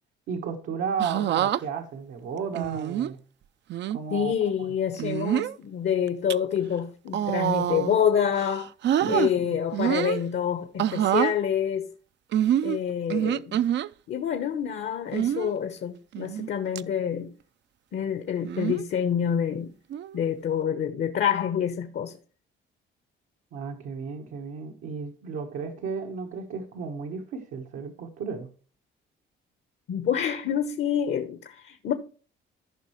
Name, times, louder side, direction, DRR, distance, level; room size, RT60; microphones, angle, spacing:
voice 1, 0.3-3.2 3.9-4.3 4.6-4.7 9.0-9.4 23.5-28.5, right 5 dB, 85° right, 1.3 m, -33 dB
sound 1, 1.0-1.6 2.6-3.1 3.7-4.0 5.0-5.5 6.1-6.3 7.1-8.0 8.3-9.3 9.7-10.2 10.8-11.3 12.3-13.9 15.1-15.5 16.1-16.5 16.8-16.9 18.4-18.8 19.9-20.2, right 11 dB, 65° right, 0.5 m, -26 dB
voice 2, 4.1-8.7 9.1-11.9 12.6-13.6 14.1-17.3 17.9-19.7 20.1-22.2 29.9-31.9, left 8 dB, 65° left, 1.0 m, -27 dB
14.5 x 5.5 x 3.1 m
cardioid pair, 90°, 20 cm